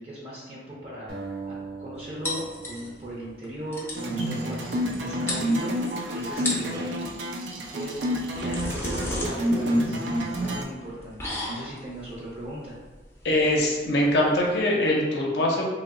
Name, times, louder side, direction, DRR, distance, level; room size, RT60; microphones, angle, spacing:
voice 1, 0.0-5.8 6.1-6.9 7.5-8.0 8.4-10.0 10.3-12.7, right 1 dB, 35° right, -6 dB, 0.6 m, -38 dB
sound 1, 1.1-4.3, right 4 dB, 60° right, 1.0 m, -41 dB
sound 2, 2.2-3.1 3.4-3.5 3.7-4.1 4.9-5.0 5.3-5.9 6.3-6.8 8.0-14.6, left 1 dB, 15° left, 0.5 m, -34 dB
sound 3, 3.9-10.6, equal, 85° right, 0.5 m, -28 dB
voice 2, 13.2-15.7, left 1 dB, 70° left, -2 dB, 0.5 m, -23 dB
2.9 x 2.0 x 3.5 m, 1.3 s
head